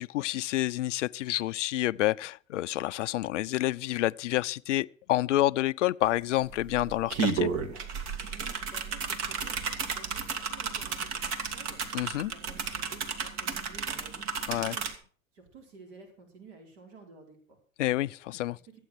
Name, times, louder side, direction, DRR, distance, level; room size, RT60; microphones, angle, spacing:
voice 1, 0.0-7.5 11.9-12.3 14.5-14.8 17.8-18.6, left 15 dB, 60° left, 0.6 m, -28 dB
sound 1, 6.0-6.1 6.4-14.9, right 5 dB, 40° right, 2.1 m, -33 dB
voice 2, 8.3-11.9 12.3-14.9 15.3-17.6, right 4 dB, 55° right, 4.7 m, -52 dB
14.5 x 9.1 x 6.4 m
figure-of-eight pair, 95°, 41 cm